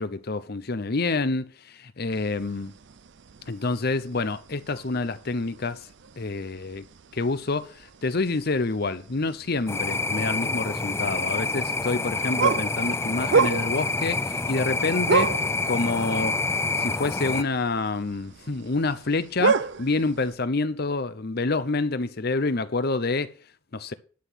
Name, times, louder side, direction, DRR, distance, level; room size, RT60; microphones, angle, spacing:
voice 1, 0.0-2.7 3.5-5.9 6.2-6.9 7.1-15.3 15.7-16.4 16.8-23.3 23.7-23.9, left 3 dB, 50° left, 0.8 m, -27 dB
sound 1, 2.1-20.3, right 5 dB, 60° right, 0.5 m, -32 dB
sound 2, 9.7-17.4, left 3 dB, 15° left, 0.4 m, -27 dB
11.5 x 5.9 x 6.3 m
head